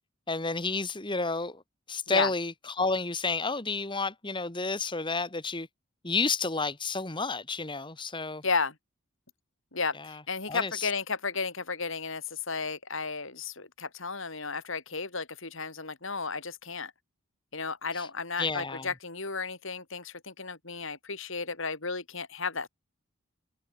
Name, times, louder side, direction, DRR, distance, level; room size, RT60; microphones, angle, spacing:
voice 1, 0.3-1.6 1.9-5.7 6.0-8.4 9.9-10.2 10.5-10.9 17.9-18.1 18.4-18.9, left 3 dB, 20° left, 1.8 m, -31 dB
voice 2, 8.4-8.8 9.7-16.9 17.5-22.7, left 4 dB, 60° left, 3.3 m, -33 dB
head